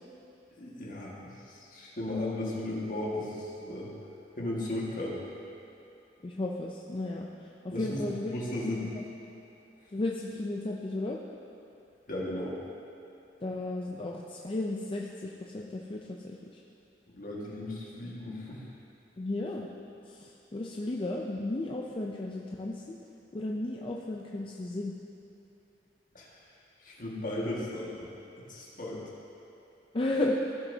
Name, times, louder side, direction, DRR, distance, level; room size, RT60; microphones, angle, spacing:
voice 1, 0.6-3.9 4.4-5.2 7.7-9.0 12.1-12.6 17.1-18.6 26.1-26.3 26.8-28.1 28.5-29.0, left 1 dB, 50° left, -5 dB, 1.7 m, -36 dB
voice 2, 6.2-7.3 7.6-8.4 8.6-8.9 9.9-11.2 13.4-16.4 19.2-19.7 20.1-23.0 23.3-24.9 29.9-30.4, left 2 dB, 30° left, -1 dB, 0.5 m, -34 dB
15.5 x 7.1 x 2.8 m, 2.8 s
head